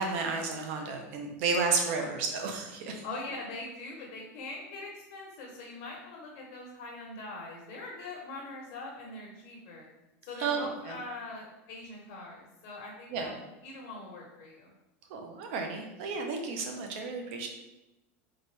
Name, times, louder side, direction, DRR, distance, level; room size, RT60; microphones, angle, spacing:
voice 1, 0.0-3.0 10.4-11.0 13.1-13.3 15.1-17.5, right 4 dB, 60° right, 3 dB, 0.9 m, -32 dB
voice 2, 3.0-9.9 10.2-13.3 13.6-14.7, left 2 dB, 50° left, -2 dB, 1.1 m, -42 dB
3.9 x 3.9 x 3.3 m, 0.96 s
supercardioid pair, 145°, 7 cm